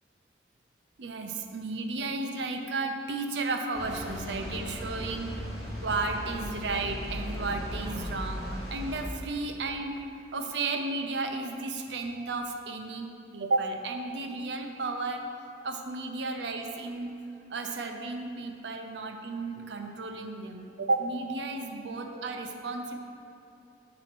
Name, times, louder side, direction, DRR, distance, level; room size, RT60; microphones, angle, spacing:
voice 1, 1.0-5.3 5.8-10.0 10.3-15.2 15.6-17.1 17.5-23.0, right 3 dB, 75° right, 4 dB, 0.6 m, -33 dB
sound 1, 3.7-9.0, equal, ahead, 1.5 m, -37 dB
7.9 x 2.9 x 6.0 m, 2.8 s
head